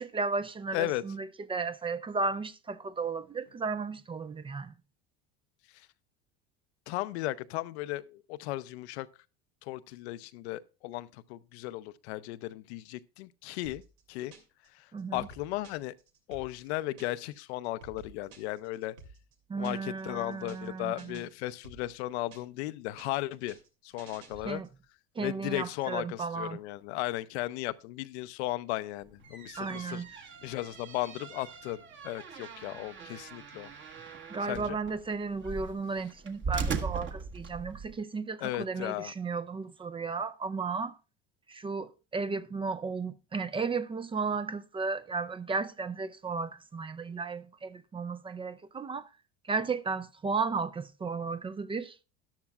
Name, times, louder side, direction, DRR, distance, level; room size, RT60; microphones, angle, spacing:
voice 1, 0.0-4.7 14.9-15.3 19.5-21.2 24.4-24.7 25.2-26.6 29.6-30.1 34.3-41.0 41.5-49.1 49.4-52.0, right 4 dB, 15° right, 0.4 m, -34 dB
voice 2, 0.7-1.0 5.7-5.9 6.9-9.1 9.6-13.8 14.1-14.3 14.7-15.9 16.3-19.0 19.5-23.6 23.8-24.6 25.2-33.7 34.4-34.8 38.4-39.1, left 16 dB, 85° left, 0.6 m, -36 dB
sound 1, 13.6-14.7 15.0-17.3 17.6-20.0 20.3-20.7 21.0-22.7 23.0-24.8, right 3 dB, 85° right, 2.7 m, -53 dB
sound 2, 29.1-37.9, right 5 dB, 35° right, 1.4 m, -39 dB
13.0 x 11.0 x 2.3 m
supercardioid pair, 105°, 32 cm